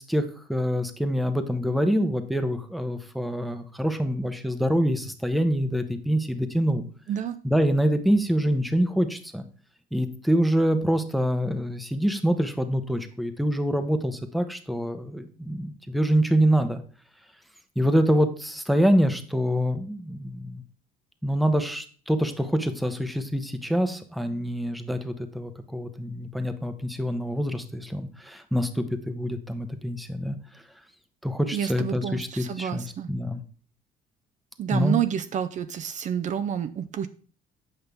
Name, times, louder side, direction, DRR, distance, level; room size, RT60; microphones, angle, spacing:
voice 1, 0.0-6.8 7.4-9.4 9.9-16.8 17.8-20.6 21.2-30.4 31.2-33.4 34.7-35.0, equal, ahead, 8 dB, 0.8 m, -25 dB
voice 2, 7.1-7.4 31.5-33.1 34.6-37.1, right 9 dB, 45° right, 9 dB, 0.5 m, -29 dB
8.1 x 5.4 x 3.4 m, 0.43 s
cardioid pair, 110°, 17 cm